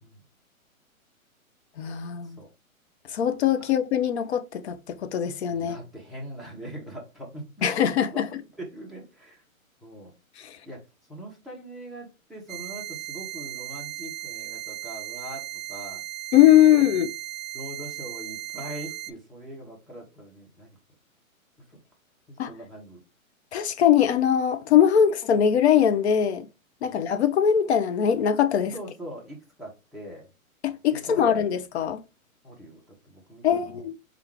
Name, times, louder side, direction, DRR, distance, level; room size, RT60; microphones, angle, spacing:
voice 1, 1.8-2.4 3.1-5.8 7.6-8.3 10.4-10.6 16.3-17.1 22.4-22.5 23.5-26.5 26.8-28.7 30.6-32.0 33.4-34.0, left 9 dB, 50° left, 0.6 m, -21 dB
voice 2, 5.5-7.7 8.1-8.3 8.6-9.4 9.8-10.1 10.7-10.8 11.1-16.0 16.7-16.9 17.5-20.8 21.7-21.8 22.3-23.0 26.8-27.0 28.7-30.3 30.9-31.2 32.4-33.9, right 1 dB, ahead, 0.6 m, -42 dB
sound 1, 12.5-19.1, right 15 dB, 65° right, 0.6 m, -37 dB
4.4 x 2.4 x 3.6 m
hypercardioid pair, 140°, 42 cm